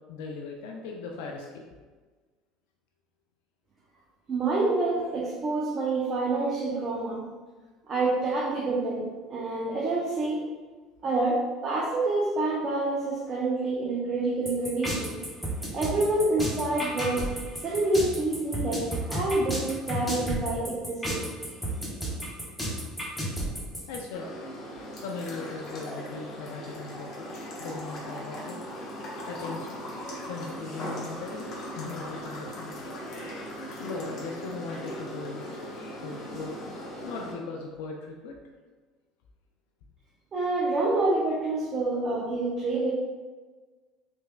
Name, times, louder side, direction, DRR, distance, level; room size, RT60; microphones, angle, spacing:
voice 1, 0.1-1.6 23.1-23.2 23.9-24.3 24.9-28.6 29.3-29.8 30.2-33.0 33.8-35.5 36.0-38.3, left 4 dB, 80° left, 1 dB, 0.3 m, -39 dB
voice 2, 4.3-7.3 7.9-10.4 11.0-15.2 15.7-17.3 17.6-21.3 40.3-42.9, right 2 dB, 40° right, -4 dB, 0.6 m, -27 dB
sound 1, 14.5-24.0, equal, 10° left, 1.0 m, -32 dB
sound 2, 24.1-37.3, equal, 55° left, 1.0 m, -39 dB
3.3 x 3.1 x 2.2 m, 1.4 s
supercardioid pair, 85°, 0 cm